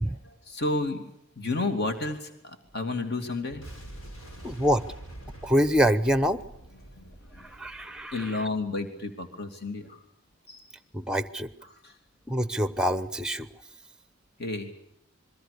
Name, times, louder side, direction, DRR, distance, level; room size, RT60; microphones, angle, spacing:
voice 1, 0.0-1.0 1.4-3.7 4.4-4.6 6.9-7.5 8.1-10.0 10.5-10.7 11.6-12.0 14.4-14.7, left 2 dB, 50° left, 6 dB, 2.8 m, -32 dB
Boom, 3.6-8.5, right 1 dB, 70° left, 6.1 m, -45 dB
voice 2, 4.4-4.9 5.4-6.4 7.4-8.3 10.9-11.5 12.3-13.5, equal, 5° right, 14 dB, 0.9 m, -25 dB
26.5 x 22.5 x 6.8 m, 0.80 s
head